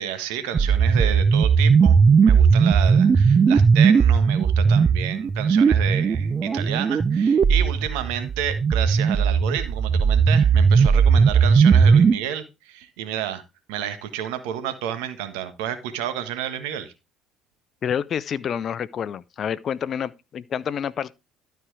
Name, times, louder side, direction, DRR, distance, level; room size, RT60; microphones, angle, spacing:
voice 1, 0.0-13.4 13.7-16.9, right 10 dB, 75° right, 1.5 m, -31 dB
sound 1, 0.5-12.1, right 6 dB, 35° right, 0.5 m, -17 dB
voice 2, 17.8-21.1, left 8 dB, 50° left, 0.6 m, -28 dB
12.5 x 4.5 x 4.8 m
hypercardioid pair, 65°, 0 cm